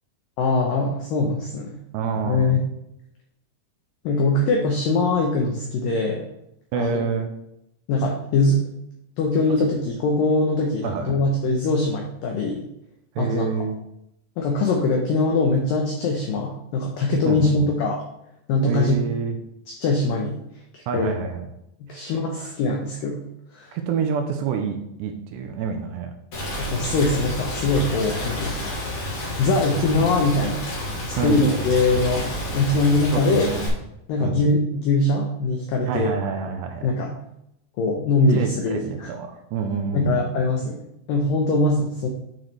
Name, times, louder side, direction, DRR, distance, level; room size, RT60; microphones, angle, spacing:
voice 1, 0.4-1.8 2.2-2.6 4.0-6.3 6.8-7.0 7.9-8.6 9.2-12.7 13.2-13.7 14.4-18.0 18.5-19.0 19.7-20.4 20.7-21.1 21.8-23.2 23.5-23.7 26.7-28.7 29.4-30.7 31.2-33.5 34.1-36.1 36.8-37.2 37.8-39.1 39.9-42.1, left 2 dB, 85° left, 1 dB, 1.9 m, -22 dB
voice 2, 1.9-2.5 6.7-7.3 10.8-11.2 13.2-13.8 17.3-17.7 18.7-19.4 20.9-21.5 21.9-22.1 22.4-22.5 23.7-26.1 31.2-31.4 33.1-33.6 34.2-34.4 35.9-36.9 38.3-40.2, right 6 dB, 80° right, 5 dB, 2.7 m, -27 dB
Rain, 26.3-33.7, equal, 45° left, 3.5 m, -30 dB
9.0 x 6.0 x 3.3 m, 0.80 s
omnidirectional pair, 5.3 m